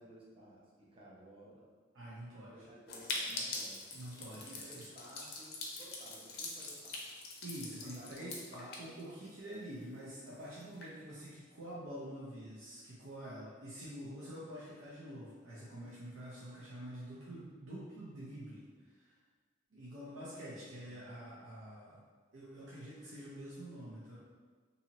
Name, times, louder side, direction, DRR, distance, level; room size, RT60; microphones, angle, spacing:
voice 1, 0.0-1.7 2.5-3.9 4.3-7.2 7.6-8.5 20.5-21.4, right 1 dB, 30° right, -6 dB, 0.7 m, -56 dB
voice 2, 1.9-2.5 3.9-4.9 7.4-19.1 19.7-22.0 22.3-24.2, right 1 dB, 80° right, -8 dB, 0.7 m, -47 dB
sound 1, 2.9-9.5 9.9-10.0 10.1-10.2 10.6-10.9, left 3 dB, 55° left, 0.5 m, -43 dB
2.7 x 2.7 x 2.8 m, 1.5 s
head